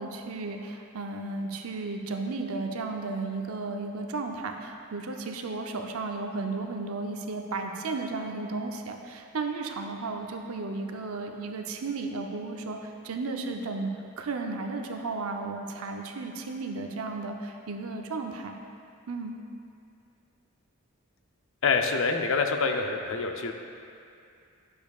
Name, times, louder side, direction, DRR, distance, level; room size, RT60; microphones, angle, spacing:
voice 1, 0.0-18.6 19.1-19.3, right 3 dB, 80° right, 3 dB, 0.6 m, -34 dB
voice 2, 21.6-23.5, left 4 dB, 65° left, 4 dB, 0.5 m, -26 dB
10.5 x 6.9 x 2.4 m, 2.5 s
head